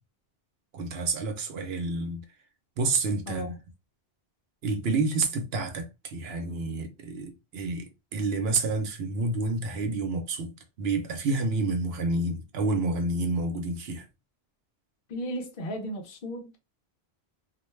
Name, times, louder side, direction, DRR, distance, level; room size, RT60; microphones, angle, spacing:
voice 1, 0.7-2.2 2.8-3.5 4.6-14.1, right 3 dB, 70° right, 0.9 m, -29 dB
voice 2, 15.1-16.6, equal, 55° left, 0.8 m, -35 dB
2.4 x 2.2 x 3.1 m
omnidirectional pair, 1.1 m